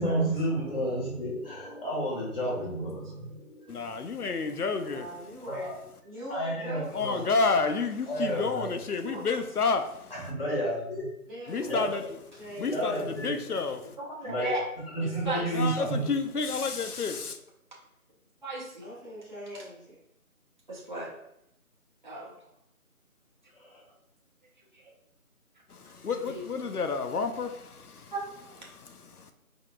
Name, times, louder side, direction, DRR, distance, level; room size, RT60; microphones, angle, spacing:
voice 1, 0.0-3.7 5.5-5.7 6.3-7.2 8.1-8.7 10.1-11.1 11.7-12.0 12.7-13.3 14.2-14.5 14.9-16.1 23.6-23.8, right 1 dB, 40° left, 1.8 m, -31 dB
voice 2, 3.7-5.1 6.9-10.1 11.5-12.2 12.6-14.0 15.5-17.4 25.7-28.1 28.7-29.3, left 4 dB, 80° left, 0.8 m, -30 dB
voice 3, 4.7-5.7 6.0-7.7 11.2-11.8 12.3-13.5 14.2-14.3 18.8-20.0, equal, 10° right, 1.2 m, -42 dB
voice 4, 14.0-14.6 15.0-15.4 18.4-18.9 20.7-21.1 22.0-22.3 26.3-26.4 28.1-28.5, right 2 dB, 30° right, 0.8 m, -36 dB
4.9 x 4.0 x 2.5 m
figure-of-eight pair, 165°, 45 cm